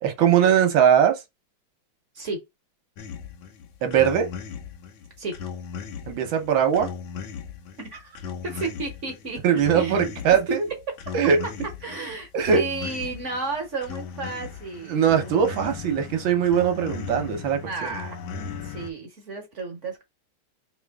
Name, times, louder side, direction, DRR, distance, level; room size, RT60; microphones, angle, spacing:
voice 1, 0.0-1.2 3.8-4.3 6.1-6.9 9.4-10.6 11.1-11.4 12.3-12.6 14.9-17.9, right 8 dB, 70° right, 1.5 m, -20 dB
sound 1, 3.0-18.9, left 6 dB, 70° left, 1.4 m, -37 dB
voice 2, 7.8-8.2 8.4-10.1 11.8-15.3 17.6-18.1 18.6-20.0, right 3 dB, 45° right, 1.1 m, -33 dB
3.7 x 3.0 x 3.4 m
omnidirectional pair, 2.4 m